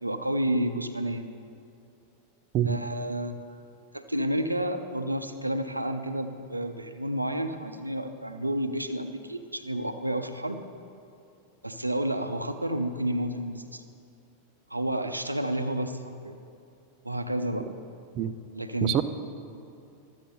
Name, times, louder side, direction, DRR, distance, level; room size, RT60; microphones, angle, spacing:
voice 1, 0.0-1.3 2.7-3.3 3.9-10.6 11.6-13.8 14.7-16.4 17.0-17.7 18.5-18.9, right 1 dB, 85° right, 7 dB, 0.7 m, -30 dB
voice 2, 2.5-2.8 18.1-18.3 18.8-19.0, right 11 dB, 35° right, 11 dB, 0.5 m, -25 dB
13.0 x 7.9 x 5.4 m, 2.6 s
figure-of-eight pair, 90°, 0 cm